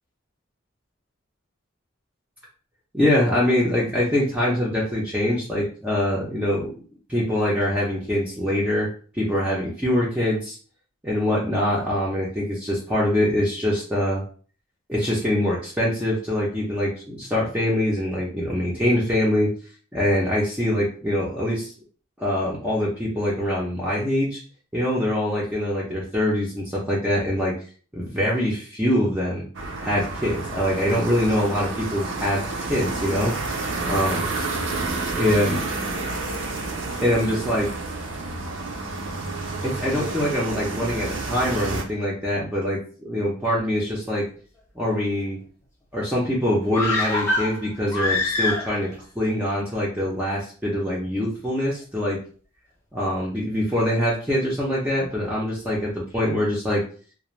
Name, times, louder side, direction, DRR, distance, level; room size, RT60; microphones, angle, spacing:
voice 1, 2.9-6.8 7.1-8.9 9.1-10.6 11.0-14.2 14.9-19.5 19.9-21.7 22.2-24.4 24.7-27.6 27.9-29.5 29.8-32.4 32.7-33.3 33.9-34.3 35.1-35.6 37.0-37.7 39.6-44.3 44.8-45.4 45.9-52.2 52.9-56.8, left 1 dB, 5° right, -6 dB, 0.4 m, -24 dB
sound 1, 29.5-41.8, right 3 dB, 65° right, 0.5 m, -30 dB
sound 2, 46.7-49.0 49.2-49.3, left 2 dB, 15° left, 0.8 m, -24 dB
2.4 x 2.1 x 3.0 m, 0.41 s
head